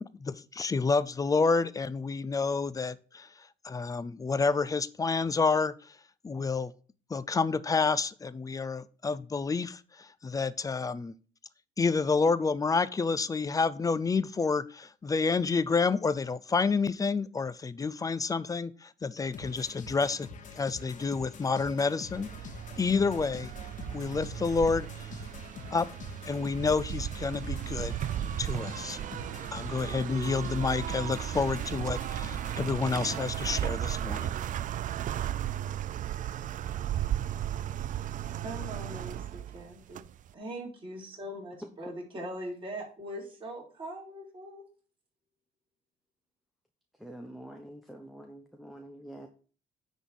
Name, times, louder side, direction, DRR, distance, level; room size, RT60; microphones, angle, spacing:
voice 1, 0.0-3.3 3.6-5.7 6.2-6.7 7.1-11.1 11.8-20.3 20.6-22.3 22.8-23.5 23.9-25.1 25.7-25.9 26.2-28.0 28.4-29.0 29.5-34.3, left 4 dB, 20° left, 17 dB, 0.6 m, -29 dB
sound 1, 19.3-33.6, left 5 dB, 50° left, 1.7 m, -45 dB
sound 2, 22.1-40.3, right 11 dB, 50° right, 0.5 m, -35 dB
voice 2, 38.4-40.0 40.3-44.6, equal, 30° right, -2 dB, 4.9 m, -41 dB
voice 3, 46.9-49.3, right 1 dB, ahead, 4 dB, 1.1 m, -46 dB
10.0 x 4.1 x 7.0 m, 0.39 s
cardioid pair, 110°, 17 cm